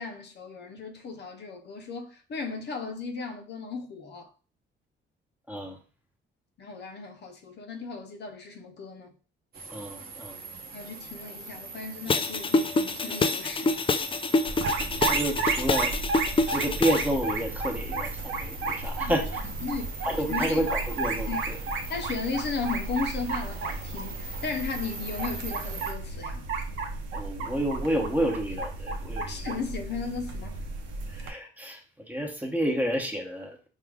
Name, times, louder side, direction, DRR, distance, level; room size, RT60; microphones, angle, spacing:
voice 1, 0.0-4.3 6.6-9.1 10.7-13.9 19.0-19.8 20.3-20.6 21.3-21.5 21.9-26.4 29.3-30.6, left 4 dB, 60° left, 0.7 m, -36 dB
sound 1, 9.5-25.9, right 4 dB, 50° right, 0.9 m, -42 dB
voice 2, 9.7-10.4 15.0-15.9 16.5-19.3 20.0-21.6 27.1-29.4 31.1-31.8 32.1-33.6, right 1 dB, 10° right, 0.9 m, -30 dB
sound 2, 12.1-17.1, left 3 dB, 25° left, 0.4 m, -26 dB
sound 3, 14.5-31.3, right 3 dB, 75° right, 0.7 m, -33 dB
4.7 x 2.4 x 3.4 m
cardioid pair, 90°, 20 cm